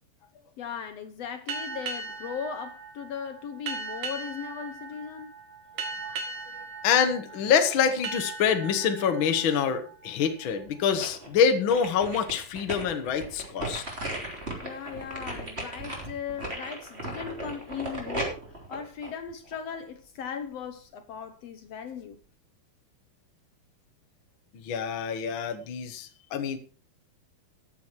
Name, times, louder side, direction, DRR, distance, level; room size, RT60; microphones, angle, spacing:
voice 1, 0.6-5.3 14.6-18.4 18.7-22.2, left 7 dB, 70° left, 1.5 m, -38 dB
sound 1, 1.5-10.8, right 4 dB, 55° right, 2.9 m, -39 dB
voice 2, 6.8-13.8 24.5-26.6, left 7 dB, 55° left, 1.5 m, -26 dB
sound 2, 10.4-11.3 11.7-19.8 20.2-20.3, right 1 dB, 20° right, 3.1 m, -36 dB
14.0 x 9.4 x 4.6 m
omnidirectional pair, 4.2 m